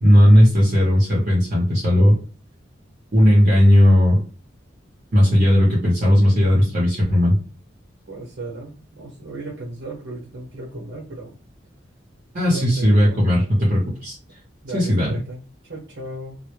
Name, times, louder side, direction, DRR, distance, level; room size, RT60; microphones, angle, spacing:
voice 1, 0.0-2.2 3.1-4.2 5.1-7.4 12.3-14.2 14.7-15.2, equal, 45° right, -5 dB, 0.7 m, -16 dB
voice 2, 8.0-11.4 12.5-13.2 14.6-16.4, right 2 dB, 80° right, -3 dB, 0.8 m, -35 dB
2.1 x 2.1 x 3.0 m, 0.37 s
head